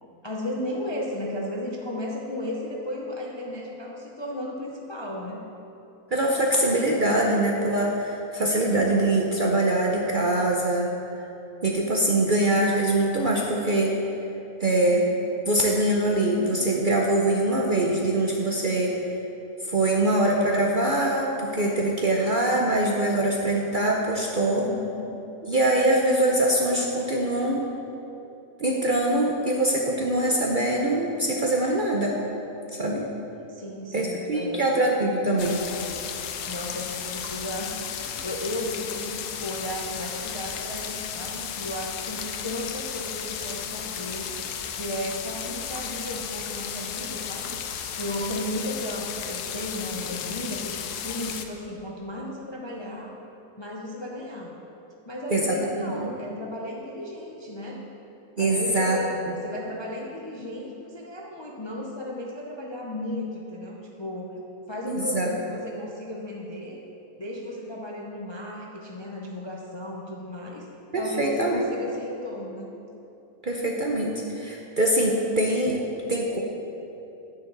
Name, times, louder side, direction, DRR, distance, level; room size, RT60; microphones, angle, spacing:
voice 1, 0.0-5.4 24.7-25.2 33.5-34.7 36.5-53.1 53.6-54.6 55.0-57.8 58.4-64.4 64.7-66.8 67.2-70.7 70.9-72.8, left 1 dB, 30° left, -2 dB, 0.4 m, -34 dB
voice 2, 6.1-10.9 11.6-14.0 14.6-15.1 15.5-18.9 19.7-24.7 25.5-27.7 28.6-32.2 32.8-33.0 33.9-35.6 55.3-56.1 58.4-59.0 64.9-65.3 70.9-71.6 73.4-75.8 76.1-76.4, right 1 dB, 45° right, -1 dB, 0.7 m, -23 dB
sound 1, 35.4-51.5, left 8 dB, 80° left, 1.2 m, -34 dB
9.5 x 9.3 x 3.9 m, 3.0 s
omnidirectional pair, 1.7 m